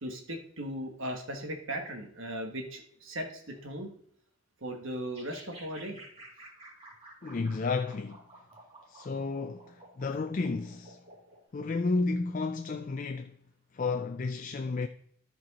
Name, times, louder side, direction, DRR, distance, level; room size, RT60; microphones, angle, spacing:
voice 1, 0.0-3.9 4.6-6.0, equal, 65° right, 1.4 m, -38 dB
sound 1, 5.1-11.4, right 2 dB, 30° right, 2.4 m, -52 dB
voice 2, 7.2-8.2 8.9-11.0 11.5-13.4 13.7-14.9, left 3 dB, 40° left, 0.4 m, -32 dB
13.0 x 4.6 x 4.1 m
head